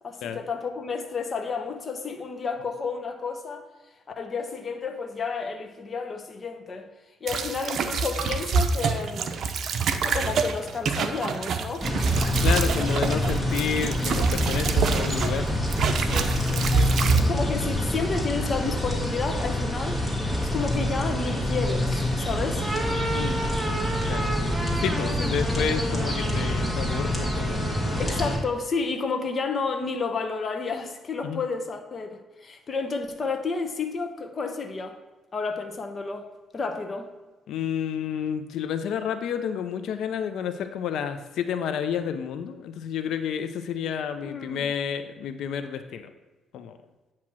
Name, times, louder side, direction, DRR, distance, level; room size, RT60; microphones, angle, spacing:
voice 1, 0.0-3.7 4.2-6.9 7.2-9.4 10.0-11.9 16.0-20.0 20.5-22.7 25.2-25.3 28.0-35.0 35.3-36.3 36.5-37.1 44.2-44.7, left 4 dB, 40° left, 5 dB, 0.9 m, -31 dB
sound 1, 7.3-15.4 15.7-17.2, right 4 dB, 65° right, 0.6 m, -26 dB
sound 2, 11.8-28.4, left 1 dB, 5° left, 1.9 m, -27 dB
voice 2, 12.4-15.5 23.1-23.4 24.1-24.3 24.8-27.6 31.2-31.4 37.5-46.1 46.5-46.8, left 8 dB, 80° left, 9 dB, 0.5 m, -30 dB
sound 3, 22.5-28.5, right 1 dB, 15° right, 1.0 m, -33 dB
8.6 x 3.0 x 6.0 m, 1.2 s
cardioid pair, 90°, 0 cm